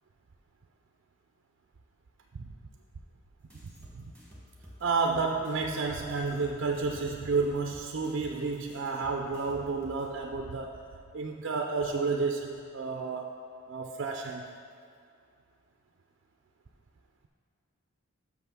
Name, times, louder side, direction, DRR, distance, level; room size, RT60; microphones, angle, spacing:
sound 1, 3.5-10.1, equal, 5° left, 1.1 m, -52 dB
voice 1, 4.8-10.8 11.1-13.3 13.7-14.4, right 4 dB, 55° right, 2 dB, 0.4 m, -31 dB
6.3 x 5.5 x 6.0 m, 2.3 s
head